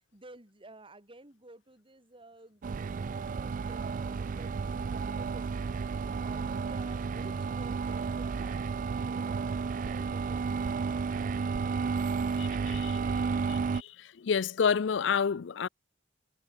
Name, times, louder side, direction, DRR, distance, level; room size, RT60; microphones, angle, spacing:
voice 1, 0.1-5.8 6.2-11.6 12.1-13.4, right 2 dB, 30° right, 5.2 m, -53 dB
sound 1, 2.6-13.8, right 5 dB, 45° right, 0.3 m, -32 dB
voice 2, 12.4-12.9 14.2-15.7, left 6 dB, 75° left, 0.5 m, -28 dB
head